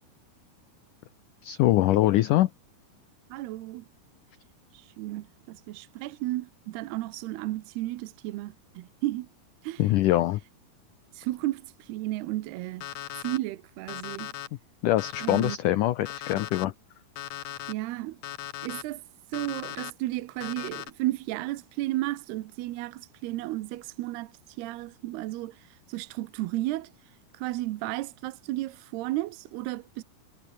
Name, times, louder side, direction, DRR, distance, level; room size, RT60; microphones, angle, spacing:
voice 1, 1.4-2.5 9.8-10.4 14.8-16.7, left 15 dB, 85° left, 1.8 m, -23 dB
voice 2, 3.3-3.9 4.7-9.3 9.6-9.8 11.1-12.9 13.2-14.3 15.2-15.6 17.7-18.2 18.6-19.0 19.3-26.9 27.3-30.0, right 17 dB, 80° right, 2.8 m, -33 dB
Alarm, 12.8-13.4 13.9-14.5 15.0-15.6 16.1-16.7 17.2-17.7 18.2-18.8 19.3-19.9 20.4-20.9, left 12 dB, 65° left, 1.8 m, -38 dB
omnidirectional pair, 4.8 m